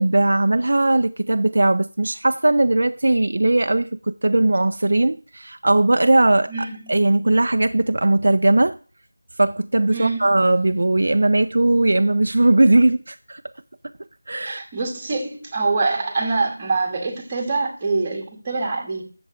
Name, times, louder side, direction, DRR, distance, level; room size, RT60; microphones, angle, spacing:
voice 1, 0.0-8.8 9.4-13.4 14.3-14.6, right 2 dB, 55° right, 0.3 m, -18 dB
voice 2, 6.5-7.0 9.9-10.3 14.4-19.0, right 3 dB, 15° right, 1.4 m, -25 dB
8.9 x 6.8 x 3.8 m
figure-of-eight pair, 175°, 0 cm